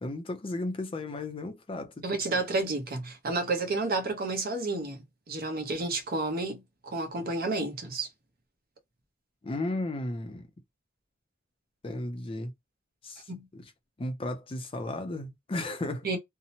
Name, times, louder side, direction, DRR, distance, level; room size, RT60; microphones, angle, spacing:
voice 1, 0.0-2.4 9.4-10.5 11.8-12.5 13.0-13.7 14.0-16.1, left 2 dB, 25° left, 0.5 m, -35 dB
voice 2, 2.0-8.1 13.3-13.4 16.0-16.2, right 3 dB, 50° right, 0.8 m, -31 dB
2.8 x 2.0 x 2.7 m
head